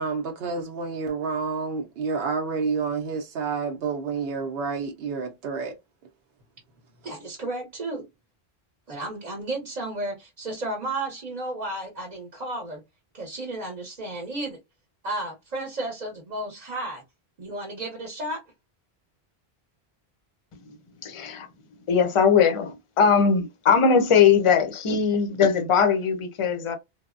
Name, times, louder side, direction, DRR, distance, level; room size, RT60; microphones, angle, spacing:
voice 1, 0.0-5.7, right 5 dB, 70° right, 0.8 m, -29 dB
voice 2, 7.0-8.0 8.9-12.8 13.1-14.6 15.0-17.0 17.4-18.4, right 2 dB, 45° right, 0.8 m, -33 dB
voice 3, 21.0-21.5 21.9-26.8, left 6 dB, 40° left, 0.5 m, -20 dB
3.2 x 2.0 x 2.4 m
omnidirectional pair, 1.0 m